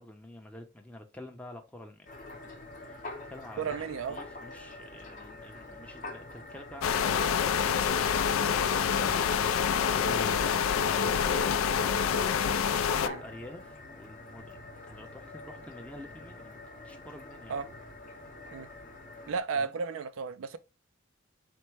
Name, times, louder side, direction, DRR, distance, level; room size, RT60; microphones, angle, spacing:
voice 1, 0.0-3.8 4.1-12.0 12.2-17.6 19.5-19.7, left 1 dB, 5° left, 0.6 m, -48 dB
sound 1, 2.1-19.4, left 2 dB, 40° left, 0.8 m, -46 dB
voice 2, 3.6-4.2 13.0-13.2 17.5-17.7 18.5-18.7 19.3-20.6, right 5 dB, 75° right, 0.4 m, -33 dB
sound 2, 6.8-13.1, left 7 dB, 80° left, 0.4 m, -27 dB
4.3 x 2.1 x 4.6 m
head